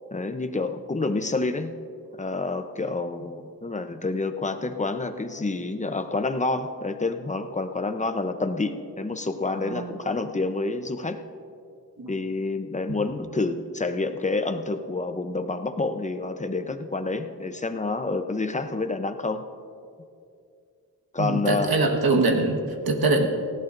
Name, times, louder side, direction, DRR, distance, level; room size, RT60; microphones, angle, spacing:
voice 1, 0.1-1.8 2.1-11.2 12.1-19.4 21.1-21.7, left 3 dB, 20° left, 8 dB, 0.7 m, -28 dB
voice 2, 9.6-9.9 12.0-12.1 21.2-23.3, right 2 dB, 75° right, 2 dB, 1.5 m, -23 dB
18.5 x 16.0 x 2.6 m, 2.5 s
wide cardioid pair, 100°, 37 cm